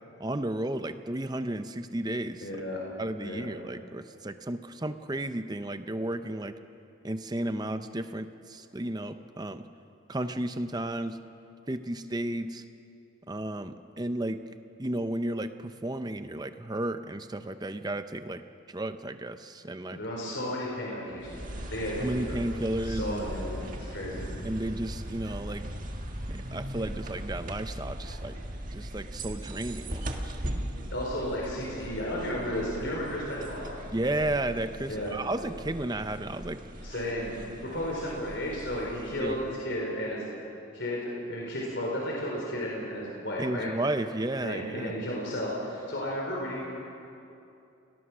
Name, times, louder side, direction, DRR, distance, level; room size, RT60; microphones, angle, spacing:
voice 1, 0.2-2.6 3.0-6.6 7.0-9.6 10.1-11.2 11.7-12.6 13.3-14.4 14.8-18.4 18.7-20.0 22.0-23.2 24.4-25.6 26.5-28.4 28.7-30.4 33.9-36.6 39.2-39.4 43.4-45.0, right 1 dB, 20° right, 10 dB, 0.7 m, -33 dB
voice 2, 2.4-2.8 3.2-3.5 19.9-22.4 22.8-24.3 30.9-33.7 34.9-35.1 36.8-37.3 37.6-40.3 40.7-43.7 44.4-46.7, equal, 55° left, -3 dB, 4.4 m, -33 dB
sound 1, 21.2-39.7, right 1 dB, 40° right, 1.8 m, -39 dB
29.5 x 19.5 x 6.2 m, 2.7 s
head